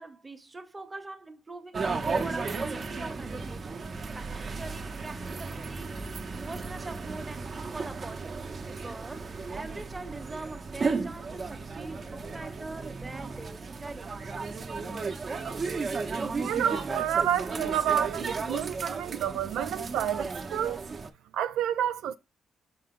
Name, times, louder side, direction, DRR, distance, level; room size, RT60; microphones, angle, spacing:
voice 1, 0.0-3.8 4.1-6.1 6.4-14.1, right 2 dB, 20° right, 1.2 m, -43 dB
sound 1, 1.7-21.1, right 4 dB, 40° right, 1.0 m, -34 dB
voice 2, 16.4-20.8 21.3-22.2, right 10 dB, 85° right, 0.4 m, -29 dB
5.8 x 4.9 x 3.8 m
cardioid pair, 90°, 0 cm